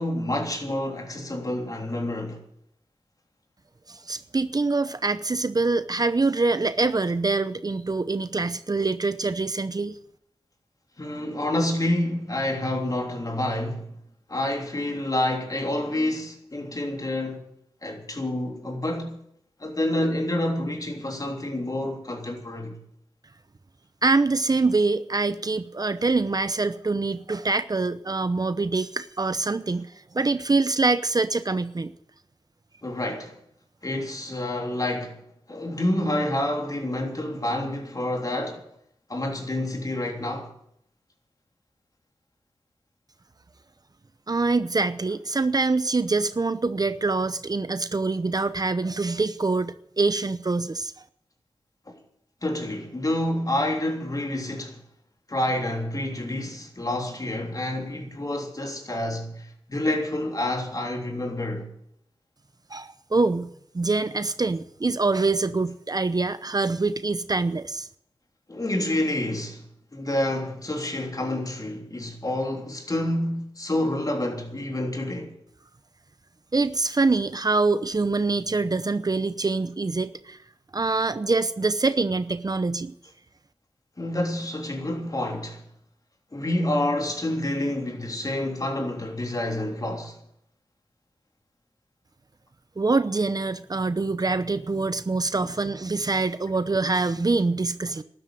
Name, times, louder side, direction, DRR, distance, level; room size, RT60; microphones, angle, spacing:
voice 1, 0.0-2.4 11.0-13.9 14.3-17.4 17.8-19.2 19.6-22.7 32.8-33.3 33.8-35.2 35.5-38.6 39.1-40.5 51.9-52.0 52.4-54.8 55.3-61.7 68.5-69.7 69.9-75.3 84.0-85.6 86.3-90.2 95.4-95.5, left 1 dB, 35° left, 3.3 m, -28 dB
voice 2, 3.9-10.0 24.0-31.9 44.3-50.9 62.7-63.5 63.7-67.9 76.5-80.4 80.7-82.9 92.8-98.0, right 3 dB, 40° right, 0.8 m, -25 dB
13.0 x 11.5 x 9.1 m
wide cardioid pair, 65°, 10 cm